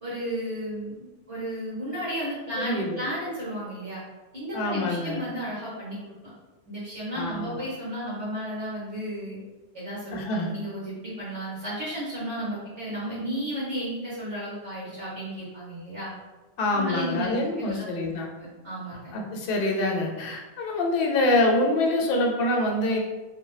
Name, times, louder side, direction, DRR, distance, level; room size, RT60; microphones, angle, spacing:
voice 1, 0.0-4.0 4.3-6.3 6.7-9.4 9.7-16.1 16.7-18.1 18.4-19.1, equal, 35° right, -8 dB, 0.8 m, -33 dB
voice 2, 2.6-3.0 4.5-5.2 7.1-7.6 10.1-10.5 16.6-18.3 19.1-23.0, left 2 dB, 65° left, 1 dB, 0.7 m, -25 dB
2.7 x 2.2 x 3.0 m, 1.2 s
omnidirectional pair, 1.0 m